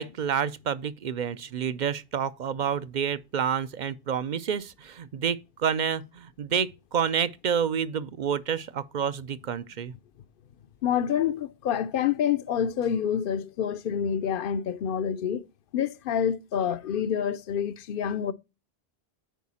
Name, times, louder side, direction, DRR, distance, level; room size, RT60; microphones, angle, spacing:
voice 1, 0.0-9.9, right 7 dB, 55° right, 0.6 m, -29 dB
voice 2, 10.8-15.5 15.7-18.3, left 8 dB, 65° left, 0.7 m, -27 dB
9.2 x 4.8 x 4.1 m
omnidirectional pair, 1.0 m